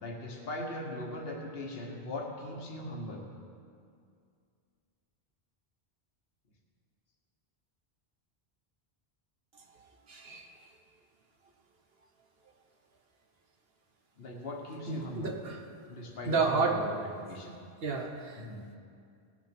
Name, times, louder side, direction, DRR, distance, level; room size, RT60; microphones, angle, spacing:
voice 1, 0.0-3.2 14.2-15.4 15.9-17.6 18.3-18.6, left 1 dB, 70° left, 0 dB, 1.6 m, -40 dB
voice 2, 10.1-10.4 14.9-15.6 16.3-16.8 17.8-18.4, right 4 dB, 70° right, 2 dB, 1.3 m, -30 dB
18.0 x 6.4 x 6.0 m, 2.3 s
omnidirectional pair, 1.0 m